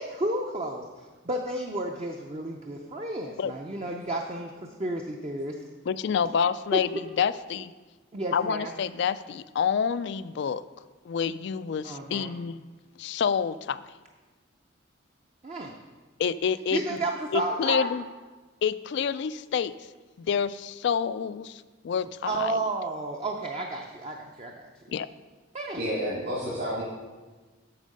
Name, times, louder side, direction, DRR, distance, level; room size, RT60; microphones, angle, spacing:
voice 1, 0.0-4.5 4.8-5.6 6.7-6.8 8.1-8.7 11.8-12.3 15.4-15.7 16.7-17.9 22.3-24.7 25.5-25.8, right 2 dB, 30° right, 1 dB, 0.6 m, -32 dB
voice 2, 5.9-6.9 7.2-7.7 8.3-10.6 11.1-12.6 13.0-13.9 16.2-16.8 17.3-18.0 18.6-19.7 20.2-22.6 24.9-25.1, left 7 dB, 60° left, 15 dB, 0.3 m, -28 dB
voice 3, 25.8-26.8, equal, 55° right, -8 dB, 2.4 m, -30 dB
8.5 x 6.4 x 5.3 m, 1.3 s
head